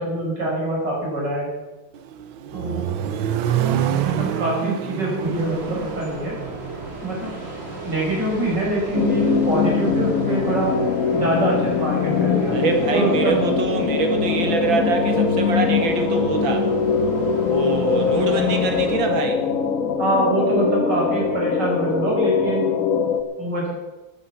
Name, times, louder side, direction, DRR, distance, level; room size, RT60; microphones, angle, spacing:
voice 1, 0.0-1.5 2.5-2.8 4.0-6.4 7.0-7.3 7.8-10.7 11.1-12.5 12.9-13.4 20.0-22.7 23.4-23.7, right 1 dB, 60° right, -4 dB, 6.3 m, -24 dB
Accelerating revving vroom, 1.9-8.0, right 10 dB, 90° right, 1.7 m, -27 dB
sound 1, 5.2-18.9, right 2 dB, 30° right, 3.6 m, -36 dB
sound 2, 8.9-23.2, left 6 dB, 50° left, 1.3 m, -22 dB
voice 2, 12.5-16.7 17.5-19.4, right 5 dB, 75° right, 5 dB, 2.5 m, -24 dB
14.0 x 10.0 x 7.1 m, 1.1 s
omnidirectional pair, 2.2 m